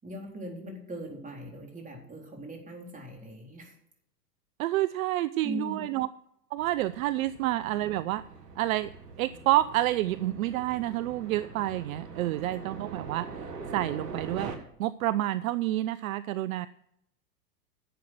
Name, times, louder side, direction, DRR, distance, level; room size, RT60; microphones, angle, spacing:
voice 1, 0.0-3.7 5.4-5.9 12.4-12.6, equal, 15° right, 1 dB, 4.0 m, -40 dB
voice 2, 4.6-6.1 6.5-8.2 8.6-8.9 9.2-14.5 14.8-16.7, right 15 dB, 60° right, 17 dB, 0.6 m, -29 dB
sound 1, 6.6-14.6, right 4 dB, 90° right, 2.0 m, -43 dB
11.0 x 7.7 x 7.7 m, 0.75 s
hypercardioid pair, 100°, 47 cm